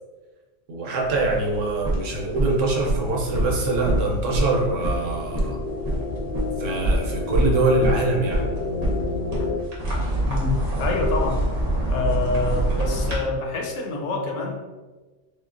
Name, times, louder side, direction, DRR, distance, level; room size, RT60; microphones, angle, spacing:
voice 1, 0.7-5.6 6.6-8.5, right 2 dB, 80° right, 0 dB, 1.0 m, -24 dB
sound 1, 1.0-13.2, right 1 dB, 40° right, 0.7 m, -26 dB
sound 2, 2.0-9.6, left 3 dB, 65° left, 0.5 m, -32 dB
voice 2, 10.3-11.4 11.9-14.5, left 3 dB, 85° left, 1 dB, 0.9 m, -26 dB
3.5 x 2.1 x 2.4 m, 1.2 s
omnidirectional pair, 1.3 m